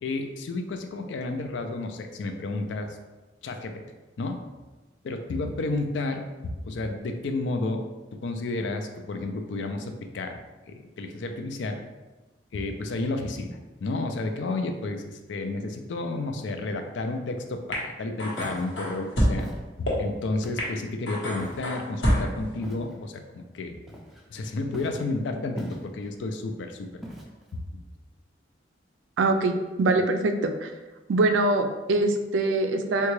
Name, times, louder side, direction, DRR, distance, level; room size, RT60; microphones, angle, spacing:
voice 1, 0.0-3.0 3.4-3.8 4.2-4.4 5.0-7.9 8.2-10.4 10.7-11.8 12.5-19.5 19.8-23.8 24.3-27.0 27.5-27.6, left 2 dB, 75° left, 6 dB, 0.4 m, -31 dB
sound 1, 17.7-17.8 18.2-19.3 19.9-20.0 20.6-20.7 21.1-22.4, equal, 90° left, 1.0 m, -26 dB
Walk footsteps, 18.3-18.7 19.4-19.6 20.4-20.8 21.4-21.7 22.6-22.9 23.9-24.3 24.7-25.0 25.6-26.1 27.0-27.5, equal, ahead, 0.4 m, -39 dB
voice 2, 29.2-30.7 31.1-33.1, right 2 dB, 85° right, 6 dB, 0.4 m, -23 dB
3.7 x 2.2 x 3.1 m, 1.2 s
head